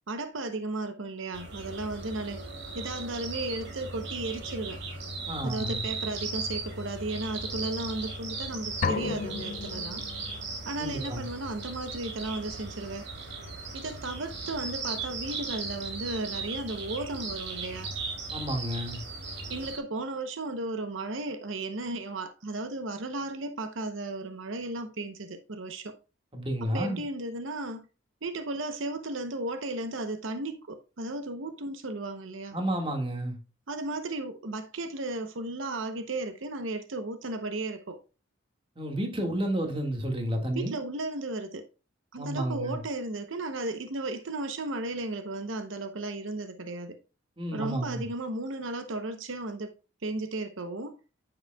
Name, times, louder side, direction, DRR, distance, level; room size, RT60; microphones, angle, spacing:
voice 1, 0.1-2.4 2.7-4.8 5.4-10.1 10.6-13.1 13.7-17.9 19.5-25.9 26.6-27.8 28.2-32.5 33.7-38.0 40.5-41.7 42.1-47.0 47.5-49.7 50.0-51.0, right 2 dB, 75° right, 0.8 m, -35 dB
sound 1, 1.3-19.8, right 3 dB, 55° right, 2.9 m, -37 dB
voice 2, 5.3-5.8 10.8-11.2 18.3-19.0 26.3-27.0 32.5-33.4 38.8-40.8 42.2-42.8 47.4-48.1, right 1 dB, 25° right, 1.8 m, -31 dB
sound 2, 8.8-10.6, left 4 dB, 40° left, 0.4 m, -33 dB
9.5 x 7.9 x 2.3 m
head